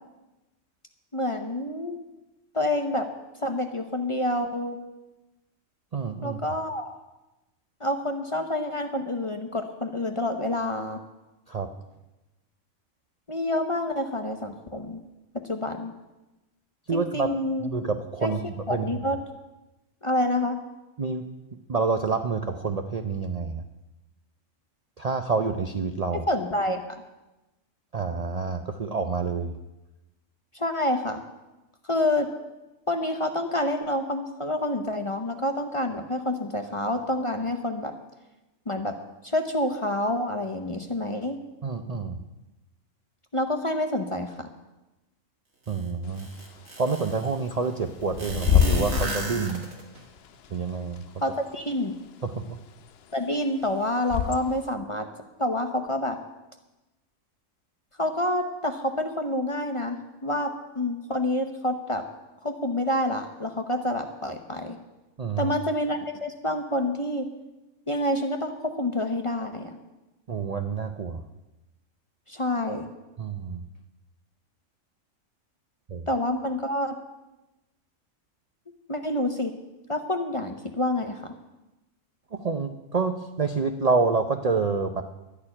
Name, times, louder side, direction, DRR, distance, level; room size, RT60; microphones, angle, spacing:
voice 1, 1.1-2.0 2.5-3.1 3.4-4.8 6.2-6.9 7.8-11.0 13.3-15.0 15.3-15.9 16.9-17.7 18.2-18.3 18.7-19.2 20.0-20.6 26.1-26.9 30.5-31.2 31.8-32.3 32.9-37.9 38.7-38.9 39.2-41.4 43.3-44.5 51.2-52.0 53.1-55.1 55.4-56.2 58.0-62.0 62.4-64.8 65.4-67.3 67.9-69.8 72.3-72.9 76.1-77.0 78.9-79.5 79.9-81.3, left 1 dB, 30° left, 6 dB, 0.7 m, -28 dB
voice 2, 5.9-6.4 11.5-11.7 16.9-17.3 17.6-18.4 18.7-18.9 21.0-23.6 25.0-26.3 27.9-29.6 41.6-42.2 45.7-46.3 46.8-49.7 50.5-51.0 52.2-52.6 65.2-65.5 70.3-71.2 73.2-73.6 75.9-76.1 82.3-85.0, right 4 dB, 45° right, 7 dB, 0.5 m, -28 dB
sound 1, 45.7-45.8 46.2-47.3 48.2-50.0, right 2 dB, 80° right, 2.6 m, -33 dB
Bird / Wind, 46.0-54.7, left 9 dB, 60° left, 0.7 m, -29 dB
12.0 x 6.8 x 9.8 m, 1.0 s
omnidirectional pair, 1.4 m